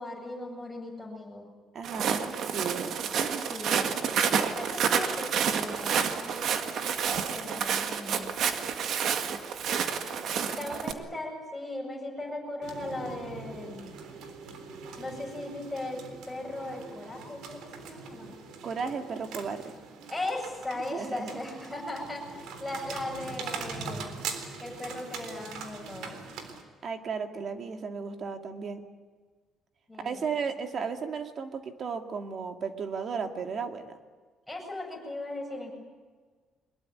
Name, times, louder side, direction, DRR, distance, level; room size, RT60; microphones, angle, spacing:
voice 1, 0.0-1.5 3.4-6.6 7.2-8.4 10.1-10.2 10.6-13.9 15.0-18.3 20.1-24.1 24.6-26.2 29.9-30.3 34.5-35.7, left 2 dB, 5° left, -2 dB, 7.8 m, -38 dB
voice 2, 1.7-3.5 10.5-10.8 18.6-19.8 20.9-21.4 26.8-28.9 30.0-33.9, right 5 dB, 40° right, 6 dB, 2.2 m, -35 dB
Walk footsteps, 1.8-10.9, right 7 dB, 60° right, 1.9 m, -29 dB
sound 1, 12.6-26.6, right 5 dB, 80° right, 3.7 m, -42 dB
23.0 x 21.5 x 9.6 m, 1.4 s
cardioid pair, 145°, 0 cm